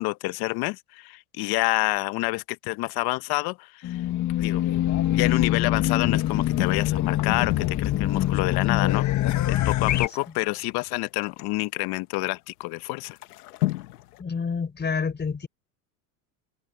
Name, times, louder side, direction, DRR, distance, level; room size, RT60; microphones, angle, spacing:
voice 1, 0.0-4.0 4.4-4.6 5.1-9.1 9.5-13.2, left 22 dB, 55° left, 1.1 m, -28 dB
Race car auto racing / Alarm, 3.8-10.1, left 13 dB, 40° left, 1.7 m, -24 dB
sound 1, 6.0-8.6 9.1-9.2 9.4-11.6 12.1-12.2 12.6-12.7 13.1-14.2, left 18 dB, 80° left, 1.9 m, -33 dB
voice 2, 14.2-15.5, left 5 dB, 20° left, 4.5 m, -28 dB
open air
hypercardioid pair, 90°, 45 cm